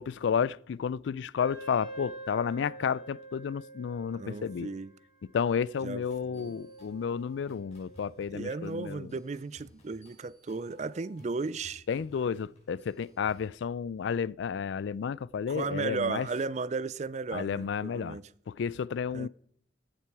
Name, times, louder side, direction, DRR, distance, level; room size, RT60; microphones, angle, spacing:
voice 1, 0.0-4.7 5.3-9.1 11.9-16.3 17.3-18.2 18.5-19.3, left 7 dB, 75° left, 0.3 m, -31 dB
Wind instrument woodwind instrument, 1.4-8.7, right 2 dB, 55° left, 5.5 m, -48 dB
voice 2, 4.1-4.9 5.8-6.0 6.3-6.6 8.3-11.9 15.5-18.2 19.1-19.3, right 4 dB, 35° right, 0.4 m, -35 dB
sound 1, 6.1-13.5, left 1 dB, 35° left, 5.1 m, -58 dB
15.0 x 7.5 x 4.7 m
head